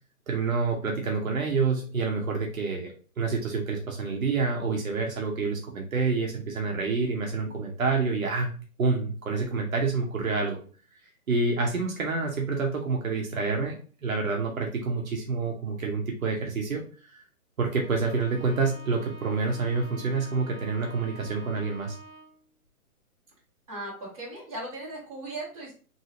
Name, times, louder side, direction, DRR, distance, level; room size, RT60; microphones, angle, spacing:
voice 1, 0.3-8.5 8.8-10.6 11.3-13.7 14.0-16.8 17.1-17.2 17.6-21.9, right 4 dB, 65° right, 0 dB, 0.9 m, -28 dB
Bowed string instrument, 17.6-22.4, right 2 dB, 5° left, 1.4 m, -47 dB
voice 2, 23.7-25.7, right 2 dB, 25° right, -7 dB, 1.3 m, -37 dB
3.0 x 2.6 x 2.9 m, 0.39 s
hypercardioid pair, 175°, 45 cm